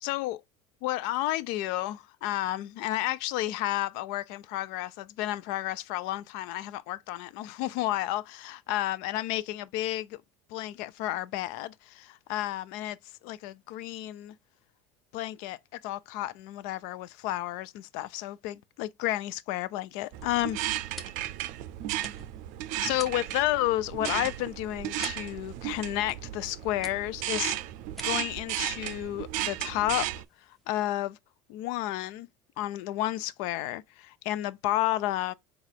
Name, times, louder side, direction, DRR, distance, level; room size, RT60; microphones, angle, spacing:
voice 1, 0.0-0.4 0.8-10.2 10.5-13.0 13.2-14.4 15.1-15.6 15.8-20.6 22.8-27.6 28.0-30.1 30.7-31.2 31.5-32.3 32.6-35.3, left 15 dB, 70° left, 0.4 m, -31 dB
sound 1, 19.9-31.1, right 1 dB, ahead, 0.8 m, -51 dB
sound 2, 20.1-30.2, right 14 dB, 60° right, 0.5 m, -34 dB
4.0 x 2.4 x 4.5 m
hypercardioid pair, 85°, 15 cm